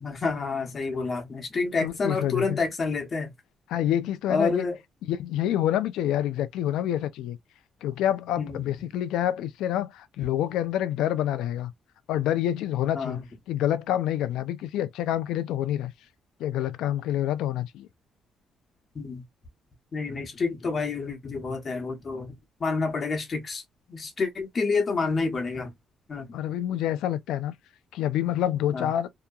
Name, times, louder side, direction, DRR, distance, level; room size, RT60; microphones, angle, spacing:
voice 1, 0.0-3.3 4.3-4.8 8.4-8.7 12.9-13.2 18.9-19.2 19.9-22.3 22.6-23.6 23.9-25.7 26.1-26.3 28.7-28.9, left 4 dB, 40° left, 1.0 m, -28 dB
voice 2, 1.8-2.6 3.7-4.7 5.0-7.4 7.8-11.7 12.1-13.2 13.5-15.9 16.4-17.9 26.3-27.6 27.9-29.1, left 11 dB, 90° left, 0.3 m, -27 dB
2.8 x 2.2 x 2.3 m
cardioid pair, 90°, 0 cm